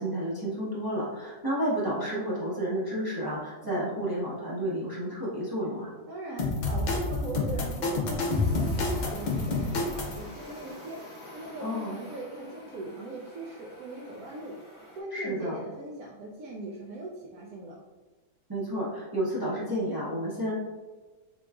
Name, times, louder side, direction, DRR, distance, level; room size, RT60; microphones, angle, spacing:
voice 1, 0.0-5.9 11.6-12.0 15.1-15.6 18.5-20.5, equal, 25° right, -7 dB, 0.5 m, -31 dB
voice 2, 3.6-4.0 6.1-11.0 11.3-14.5 15.0-17.8, right 2 dB, 80° right, -3 dB, 1.0 m, -40 dB
sound 1, 6.4-10.2, left 3 dB, 85° left, 0.4 m, -28 dB
sound 2, 8.2-15.0, left 1 dB, 40° left, 1.1 m, -47 dB
3.7 x 3.7 x 2.3 m, 1.3 s
omnidirectional pair, 1.5 m